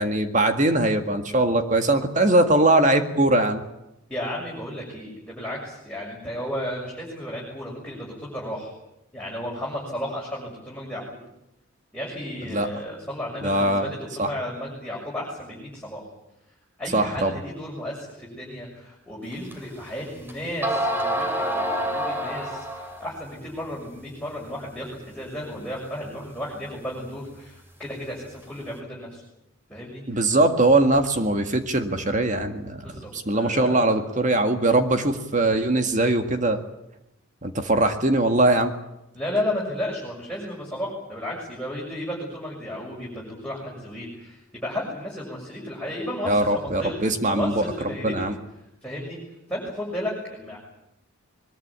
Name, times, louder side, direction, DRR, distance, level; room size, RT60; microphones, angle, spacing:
voice 1, 0.0-3.6 12.5-12.7 13.4-13.9 14.2-14.3 16.9-17.3 30.1-36.6 37.4-38.7 46.3-47.6 48.0-48.3, right 2 dB, 35° right, 6 dB, 1.9 m, -21 dB
voice 2, 4.1-8.7 9.1-11.0 11.9-16.0 16.8-29.2 29.7-30.3 32.8-34.0 39.1-48.3 48.8-50.6, left 1 dB, 5° left, -4 dB, 6.8 m, -33 dB
sound 1, 19.5-19.6 20.3-20.4 20.6-23.1, right 1 dB, 10° right, 3.2 m, -27 dB
22.5 x 22.5 x 8.8 m, 0.87 s
head